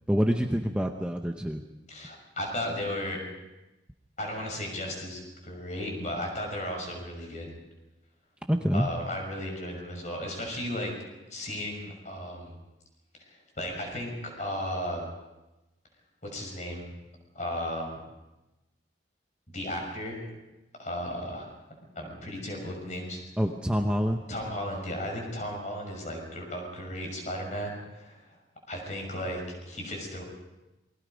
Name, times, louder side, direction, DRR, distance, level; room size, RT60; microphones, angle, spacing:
voice 1, 0.1-1.6 8.5-8.9 23.4-24.2, equal, 5° right, 3 dB, 0.9 m, -26 dB
voice 2, 1.9-3.2 4.2-7.5 8.7-10.9 11.3-12.6 13.2-15.1 16.2-16.9 17.3-18.0 19.5-20.4 20.8-21.5 22.0-23.2 24.3-28.4 28.7-30.2, left 1 dB, 40° left, 2 dB, 6.1 m, -35 dB
28.0 x 22.0 x 5.2 m, 1.0 s
head